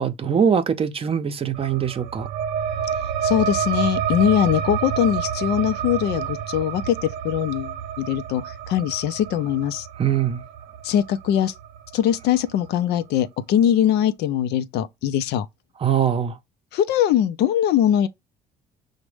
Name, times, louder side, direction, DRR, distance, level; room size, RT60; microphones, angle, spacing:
voice 1, 0.0-2.3 10.0-10.4 15.8-16.4, right 8 dB, 35° right, 0.6 m, -22 dB
sound 1, 1.5-12.7, right 8 dB, 85° right, 0.5 m, -29 dB
voice 2, 3.2-9.9 10.8-11.5 11.9-15.5 16.7-18.1, left 10 dB, 80° left, 0.5 m, -21 dB
6.0 x 2.1 x 3.2 m
cardioid pair, 110°, 17 cm